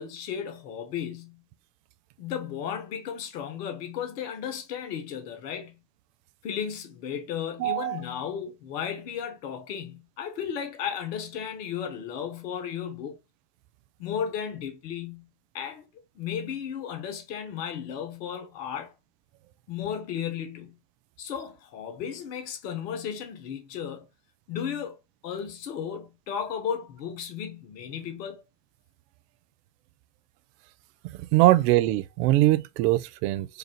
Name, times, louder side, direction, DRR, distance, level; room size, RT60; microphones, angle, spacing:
voice 1, 0.0-1.4 2.2-5.8 6.4-13.2 14.0-15.3 15.5-15.9 16.2-18.9 19.7-20.8 21.2-24.1 24.5-25.0 25.2-28.4, left 8 dB, 85° left, 1.0 m, -34 dB
voice 2, 7.6-8.0 31.3-33.5, right 16 dB, 75° right, 0.5 m, -22 dB
4.8 x 2.4 x 3.0 m
hypercardioid pair, 75°, 48 cm